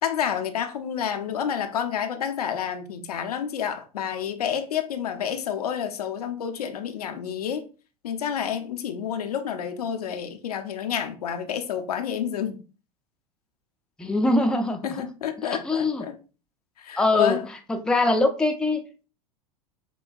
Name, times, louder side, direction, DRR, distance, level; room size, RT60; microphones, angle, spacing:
voice 1, 0.0-7.7 8.0-12.6 14.8-16.1 16.8-17.4, left 8 dB, 75° left, 0.6 m, -29 dB
voice 2, 14.0-15.0 15.4-16.1 17.0-17.4 17.7-19.1, left 2 dB, 5° left, 0.5 m, -23 dB
6.0 x 2.2 x 2.5 m
figure-of-eight pair, 90°, 20 cm